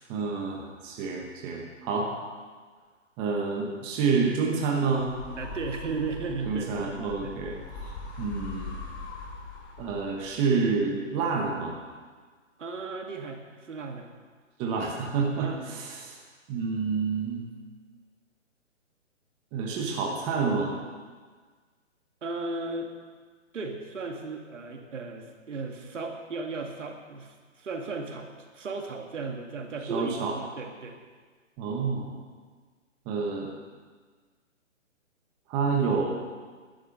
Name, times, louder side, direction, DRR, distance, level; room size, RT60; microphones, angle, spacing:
voice 1, 0.1-2.1 3.2-5.1 6.5-7.6 8.2-8.8 9.8-11.7 14.6-16.1 16.5-17.4 19.5-20.7 29.9-30.3 31.6-32.2 33.1-33.5 35.5-36.1, right 5 dB, 15° right, -1 dB, 1.0 m, -28 dB
sound 1, 5.0-10.3, left 3 dB, 20° left, 1.4 m, -41 dB
voice 2, 5.4-6.7 7.2-7.3 12.6-14.1 15.4-15.8 22.2-22.9 23.5-31.0, right 3 dB, 70° right, 3 dB, 2.2 m, -35 dB
11.5 x 10.5 x 6.5 m, 1.5 s
hypercardioid pair, 155°, 38 cm